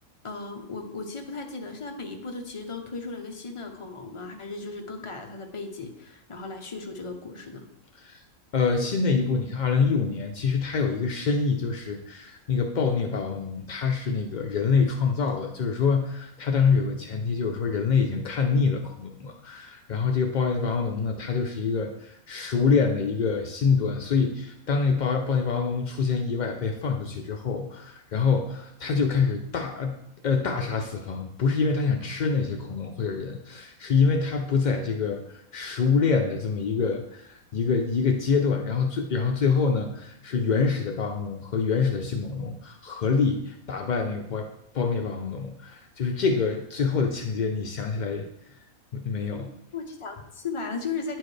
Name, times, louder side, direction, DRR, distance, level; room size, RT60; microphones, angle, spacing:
voice 1, 0.2-7.7 49.3-49.4 49.7-51.2, left 4 dB, 30° left, 3 dB, 0.6 m, -36 dB
voice 2, 8.5-30.0 30.2-44.5 44.7-48.3 48.9-49.5, left 5 dB, 70° left, 3 dB, 0.4 m, -26 dB
9.6 x 4.5 x 3.2 m, 0.77 s
omnidirectional pair, 1.5 m